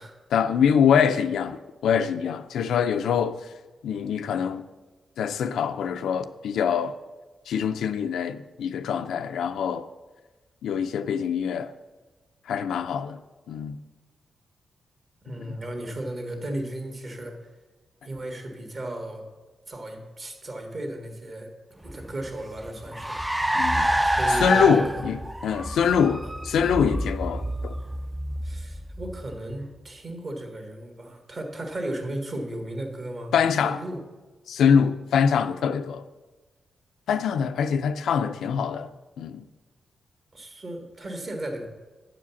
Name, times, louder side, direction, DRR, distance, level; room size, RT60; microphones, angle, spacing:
voice 1, 0.3-3.4 3.8-4.7 5.2-7.0 7.5-9.9 10.6-11.7 12.5-13.2 13.5-13.8 23.5-23.9 24.4-25.2 25.4-27.8 33.3-33.8 34.5-36.0 37.1-38.9 39.2-39.4, left 7 dB, 90° left, 0.4 m, -24 dB
voice 2, 15.2-17.4 18.0-19.3 19.7-21.5 21.8-23.2 24.0-25.1 26.2-26.3 28.4-33.3 33.6-34.0 40.3-41.7, right 1 dB, 45° right, 1.7 m, -35 dB
Car, 21.9-29.6, right 1 dB, 10° right, 0.3 m, -28 dB
9.1 x 4.9 x 7.0 m
cardioid pair, 85°, 0 cm